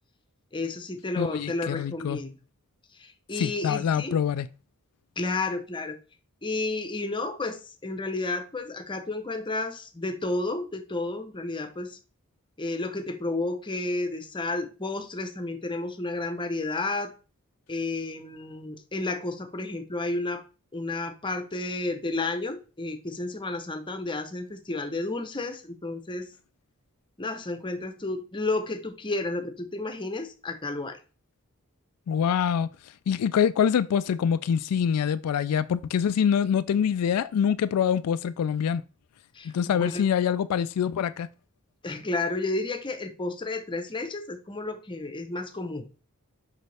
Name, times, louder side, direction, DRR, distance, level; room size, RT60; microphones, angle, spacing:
voice 1, 0.5-2.3 3.0-4.1 5.2-6.0 6.4-12.0 12.6-17.1 17.7-20.4 20.7-26.3 27.2-31.0 39.3-40.1 41.8-45.8, left 2 dB, 20° left, 0.8 m, -31 dB
voice 2, 1.2-2.2 3.4-4.5 32.1-32.7 33.1-38.8 39.5-41.3, left 8 dB, 80° left, 0.3 m, -25 dB
6.6 x 5.7 x 3.3 m
head